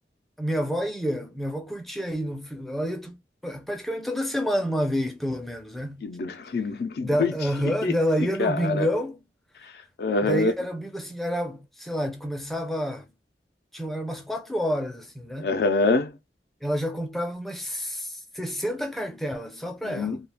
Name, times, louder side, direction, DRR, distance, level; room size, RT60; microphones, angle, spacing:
voice 1, 0.4-3.2 3.4-6.0 7.0-9.2 10.2-13.1 13.7-15.5 16.6-20.2, equal, ahead, 0.4 m, -29 dB
voice 2, 6.0-7.3 7.8-7.9 8.4-8.9 9.6-9.7 10.0-10.5 15.4-16.2 19.8-20.2, left 3 dB, 60° left, 0.4 m, -25 dB
2.3 x 2.2 x 3.3 m
head